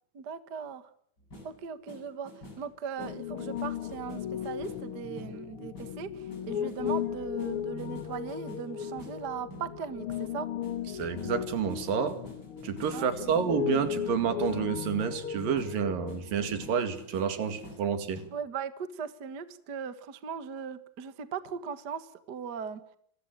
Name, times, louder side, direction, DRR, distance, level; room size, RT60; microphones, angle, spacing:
voice 1, 0.1-0.8 1.4-2.3 2.6-10.5 12.9-13.3 18.3-22.8, right 7 dB, 45° right, 12 dB, 1.4 m, -38 dB
sound 1, 1.2-2.7 3.0-14.7 15.0-18.3, left 1 dB, 25° left, 8.5 m, -49 dB
Piano, 3.0-16.7, left 9 dB, 65° left, 1.4 m, -36 dB
voice 2, 10.9-12.2 12.6-18.2, right 7 dB, 75° right, 10 dB, 3.8 m, -29 dB
28.5 x 22.5 x 7.7 m, 0.65 s
omnidirectional pair, 4.0 m